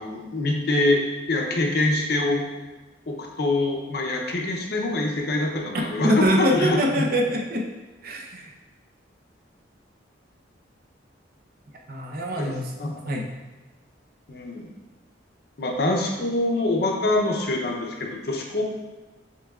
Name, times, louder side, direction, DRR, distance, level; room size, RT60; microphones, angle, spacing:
voice 1, 0.0-2.4 3.1-6.8 12.4-12.5 12.8-13.1 14.3-14.7 15.6-18.6, left 2 dB, 55° left, 1 dB, 0.7 m, -25 dB
voice 2, 6.0-7.7 8.0-8.5 11.9-12.7 13.1-13.3, equal, 50° right, 1 dB, 0.6 m, -24 dB
6.7 x 3.2 x 2.4 m, 1.2 s
head